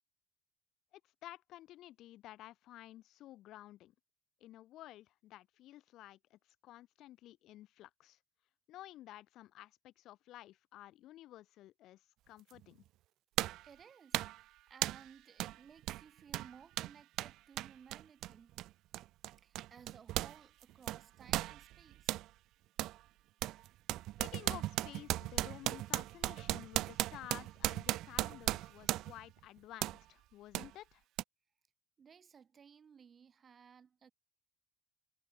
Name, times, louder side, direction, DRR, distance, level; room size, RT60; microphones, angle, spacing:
voice 1, 0.9-3.9 4.4-8.2 8.7-12.8 24.2-31.0, left 14 dB, 60° left, 7.1 m, -53 dB
sound 1, 12.5-12.6 13.4-13.7 14.1-14.4 14.8-15.1 15.4-15.6 15.8-20.4 20.6-22.3 22.8-23.0 23.4-29.3 29.8-30.0 30.5-30.7 31.2-31.3, right 15 dB, 65° right, 0.3 m, -37 dB
voice 2, 13.6-18.6 19.4-22.2 32.0-34.1, right 7 dB, 30° right, 7.8 m, -59 dB
cardioid pair, 120°, 0 cm